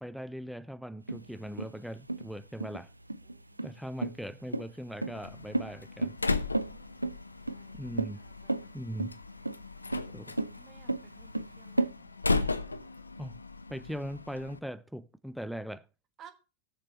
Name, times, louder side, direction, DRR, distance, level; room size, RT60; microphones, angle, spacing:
voice 1, 0.0-2.9 3.6-6.2 7.7-8.2 8.7-9.2 10.1-10.3 13.2-13.4 13.7-15.8, equal, ahead, 0.4 m, -40 dB
sound 1, 1.1-11.9, right 2 dB, 85° right, 0.4 m, -34 dB
voice 2, 3.2-4.0 6.7-8.9 10.3-12.3 16.2-16.3, right 9 dB, 30° right, 1.4 m, -59 dB
Slam, 5.1-14.6, left 3 dB, 80° left, 0.5 m, -36 dB
17.5 x 6.7 x 2.6 m
figure-of-eight pair, 90°, 0 cm